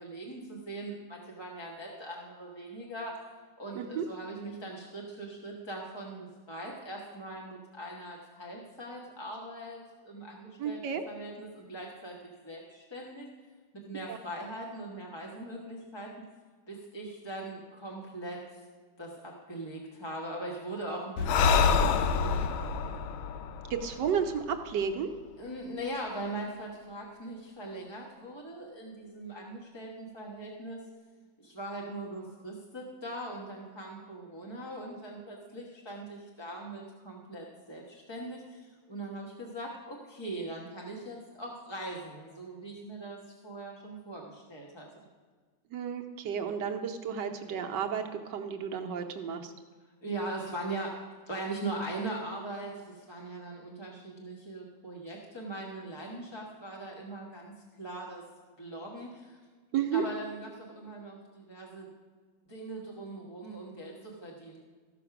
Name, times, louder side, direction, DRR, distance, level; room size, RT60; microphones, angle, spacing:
voice 1, 0.0-3.2 3.6-10.8 11.1-12.1 12.4-13.3 13.7-16.2 16.7-18.4 19.0-22.5 25.4-30.8 31.4-44.9 50.0-58.2 58.6-59.4 59.9-61.9 62.5-64.6, right 1 dB, 15° left, -2 dB, 1.0 m, -41 dB
voice 2, 3.7-4.1 10.6-11.0 14.1-14.2 23.7-25.1 45.7-49.5 59.7-60.0, right 7 dB, 70° right, 5 dB, 1.3 m, -32 dB
Breathing, 21.2-24.7, left 5 dB, 85° left, 1.5 m, -27 dB
14.0 x 5.8 x 5.9 m, 1.5 s
omnidirectional pair, 2.2 m